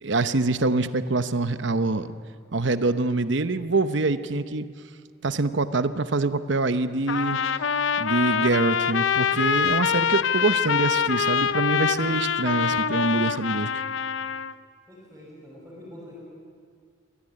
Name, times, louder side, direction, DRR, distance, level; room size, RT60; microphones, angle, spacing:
voice 1, 0.0-2.1 2.5-4.7 5.2-7.4 8.0-13.8, right 3 dB, 65° right, 12 dB, 0.9 m, -25 dB
Trumpet, 7.1-14.5, left 7 dB, 75° left, 0.6 m, -25 dB
voice 2, 14.9-16.2, left 1 dB, 10° right, -9 dB, 6.4 m, -45 dB
25.5 x 17.5 x 10.0 m, 2.1 s
head